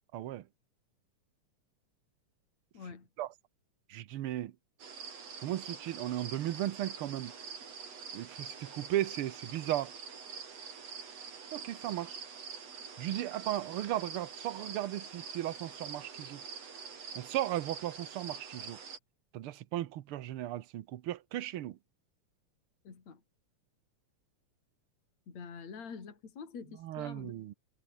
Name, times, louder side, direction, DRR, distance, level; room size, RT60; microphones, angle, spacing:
voice 1, 0.1-0.4 3.2-3.3 3.9-4.5 5.4-7.3 8.1-9.9 11.5-12.2 13.0-16.4 17.1-18.8 19.3-21.8 26.8-27.5, right 13 dB, 70° right, 1.3 m, -36 dB
voice 2, 2.7-3.1 22.8-23.2 25.3-27.3, left 5 dB, 60° left, 5.0 m, -46 dB
sound 1, 4.8-19.0, right 6 dB, 55° right, 4.3 m, -46 dB
omnidirectional pair, 3.6 m